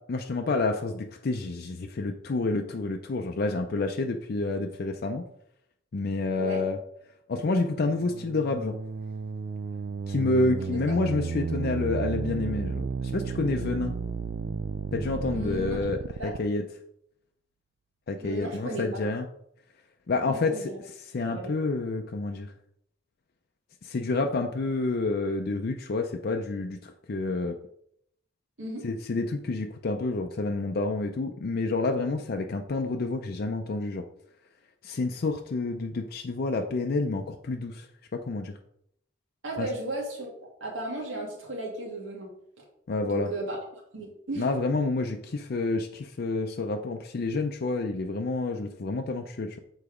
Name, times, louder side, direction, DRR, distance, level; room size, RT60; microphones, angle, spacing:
voice 1, 0.1-5.2 5.9-6.8 7.3-8.8 10.1-14.0 14.9-16.6 18.1-19.3 20.1-22.5 23.8-27.6 28.8-34.1 34.8-37.9 38.1-38.5 39.6-39.7 42.9-43.3 44.4-49.6, left 3 dB, 55° left, 4 dB, 0.5 m, -29 dB
sound 1, 7.6-16.4, right 5 dB, 55° right, 0.3 m, -33 dB
voice 2, 15.3-15.8 16.2-16.3 18.2-19.0 20.3-20.8 21.3-21.5 28.6-28.8 39.4-40.3 40.6-42.3 42.6-42.7 43.0-43.6 43.9-44.4, right 1 dB, 85° right, -1 dB, 2.1 m, -35 dB
6.8 x 4.0 x 4.9 m, 0.74 s
head